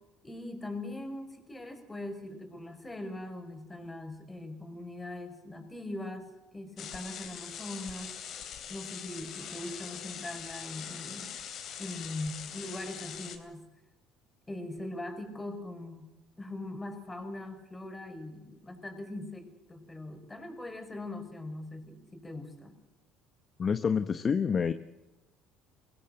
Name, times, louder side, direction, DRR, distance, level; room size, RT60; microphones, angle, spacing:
voice 1, 0.2-6.3 6.5-8.1 8.7-11.3 11.8-13.7 14.5-22.7, left 2 dB, 15° left, 6 dB, 5.6 m, -41 dB
sound 1, 6.8-13.4, left 8 dB, 60° left, 3.2 m, -42 dB
voice 2, 23.6-24.7, left 6 dB, 40° left, 10 dB, 1.0 m, -27 dB
23.0 x 16.5 x 7.8 m, 1.0 s
supercardioid pair, 85°, 0 cm